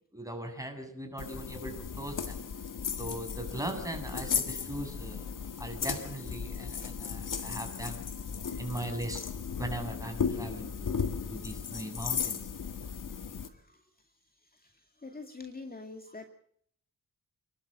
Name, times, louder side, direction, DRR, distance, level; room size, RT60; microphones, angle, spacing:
voice 1, 0.1-2.3 3.0-5.2 5.6-8.0 8.6-9.2 9.6-11.0 11.3-12.4, right 1 dB, 10° right, 4 dB, 7.3 m, -39 dB
sound 1, 1.2-13.5, left 6 dB, 65° left, 1.9 m, -36 dB
voice 2, 15.0-16.2, left 3 dB, 25° left, 5 dB, 2.3 m, -43 dB
28.5 x 12.5 x 7.6 m, 0.63 s
cardioid pair, 70°, 33 cm